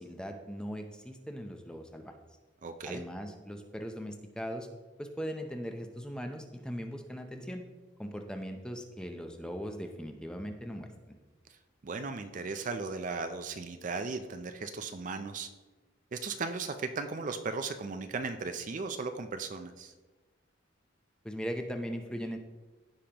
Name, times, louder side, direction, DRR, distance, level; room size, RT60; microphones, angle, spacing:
voice 1, 0.0-2.1 2.8-4.7 5.0-7.6 8.0-11.2 21.2-22.4, equal, 5° left, 5 dB, 0.6 m, -39 dB
voice 2, 2.6-3.0 11.8-15.5 16.1-19.9, right 4 dB, 40° right, 8 dB, 0.4 m, -36 dB
15.0 x 5.1 x 2.9 m, 1.2 s
head